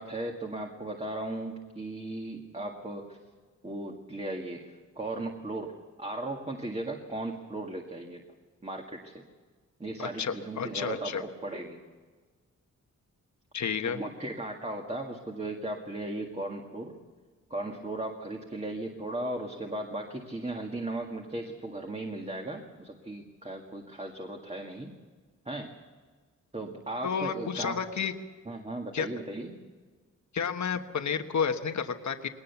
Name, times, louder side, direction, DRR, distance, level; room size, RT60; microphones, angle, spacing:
voice 1, 0.0-3.2 3.6-8.2 8.6-9.2 9.8-11.8 13.8-17.0 17.5-24.9 25.5-25.7 26.5-27.9 28.5-29.6, right 2 dB, 20° right, 1 dB, 2.0 m, -37 dB
voice 2, 10.0-11.2 13.5-14.0 27.0-28.1 28.9-29.1 30.3-32.3, left 6 dB, 65° left, 7 dB, 1.3 m, -31 dB
21.5 x 19.0 x 7.1 m, 1.4 s
wide cardioid pair, 95°, 30 cm